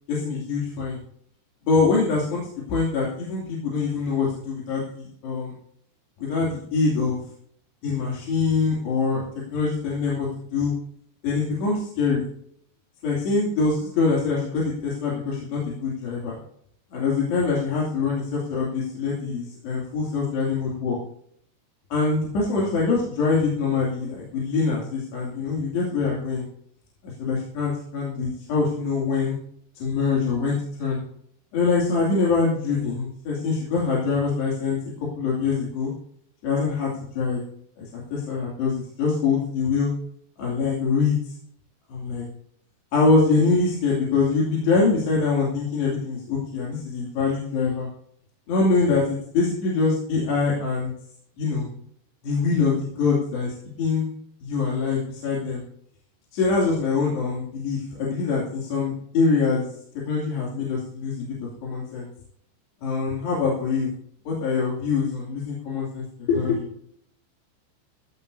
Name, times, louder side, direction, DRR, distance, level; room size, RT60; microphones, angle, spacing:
voice 1, 0.1-1.0 1.6-5.5 6.2-7.2 7.8-9.2 9.5-10.7 11.2-12.3 13.0-16.4 16.9-21.0 21.9-26.4 27.0-29.3 29.8-31.0 31.5-34.8 35.2-35.9 36.4-37.4 37.8-37.9 38.1-39.9 40.4-41.3 41.9-42.3 42.9-47.9 48.5-50.9 51.4-51.7 52.2-54.1 54.4-55.6 56.3-59.7 60.0-61.3 61.6-62.1 62.8-63.9 64.3-66.7, left 4 dB, 70° left, -4 dB, 4.7 m, -24 dB
16.5 x 15.0 x 2.7 m, 0.66 s
omnidirectional pair, 5.2 m